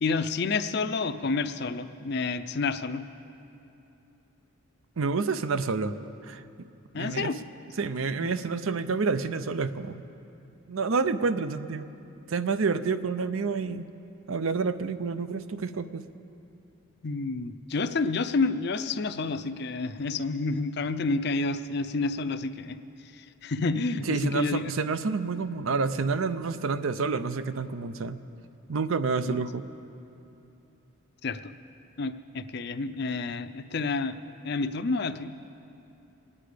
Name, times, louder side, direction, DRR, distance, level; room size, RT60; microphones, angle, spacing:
voice 1, 0.0-3.0 6.9-7.4 8.2-8.3 17.0-22.8 23.1-24.6 29.3-29.4 31.2-31.5 32.0-34.2 34.4-35.3, left 3 dB, 50° left, 11 dB, 0.5 m, -29 dB
voice 2, 5.0-5.9 6.2-6.4 7.0-7.3 7.8-10.1 10.7-11.9 12.3-13.9 14.3-16.0 24.0-28.2 28.7-29.7, right 4 dB, 75° right, 12 dB, 0.6 m, -28 dB
25.5 x 9.7 x 5.0 m, 2.9 s
head